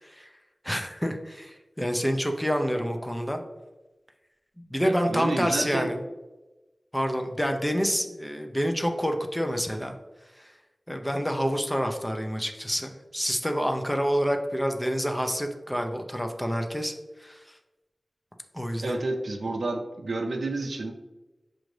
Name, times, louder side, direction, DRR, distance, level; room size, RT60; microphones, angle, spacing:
voice 1, 0.6-3.4 4.7-6.0 6.9-10.0 10.3-10.5 10.9-16.9 17.2-17.6 18.5-19.0, equal, 10° left, 4 dB, 0.6 m, -28 dB
voice 2, 4.8-5.9 18.8-20.9, right 2 dB, 85° right, 3 dB, 0.4 m, -30 dB
6.1 x 2.5 x 3.2 m, 1.1 s
cardioid pair, 40°, 0 cm